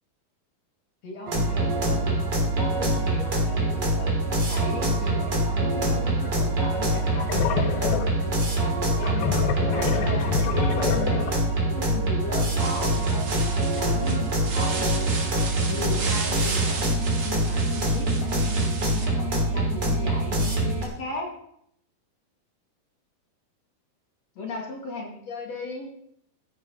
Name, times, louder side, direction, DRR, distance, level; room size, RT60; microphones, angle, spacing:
voice 1, 1.0-2.3 2.6-10.3 10.7-16.9 17.2-21.3 24.4-25.9, left 3 dB, 45° left, 0 dB, 3.1 m, -37 dB
sound 1, 1.3-20.8, right 1 dB, 30° right, 3.4 m, -24 dB
sound 2, 6.1-6.3 6.7-11.6, left 8 dB, 80° left, 2.7 m, -28 dB
sound 3, 12.6-19.1, right 4 dB, 45° right, 2.4 m, -35 dB
14.0 x 9.2 x 5.6 m, 0.71 s
omnidirectional pair, 4.5 m